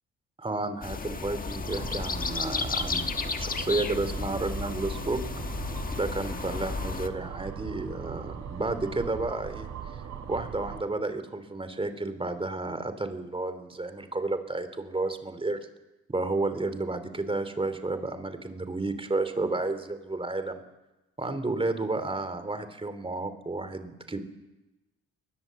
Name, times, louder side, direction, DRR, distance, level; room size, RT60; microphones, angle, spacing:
voice 1, 0.4-5.2 5.9-9.7 10.3-15.6 16.1-20.6 21.2-24.2, right 2 dB, 20° right, 10 dB, 2.9 m, -31 dB
sound 1, 0.8-7.1, left 4 dB, 30° left, 1.4 m, -33 dB
sound 2, 1.6-10.8, right 8 dB, 65° right, 3.9 m, -40 dB
21.5 x 20.5 x 7.6 m, 1.0 s
cardioid pair, 90°, 30 cm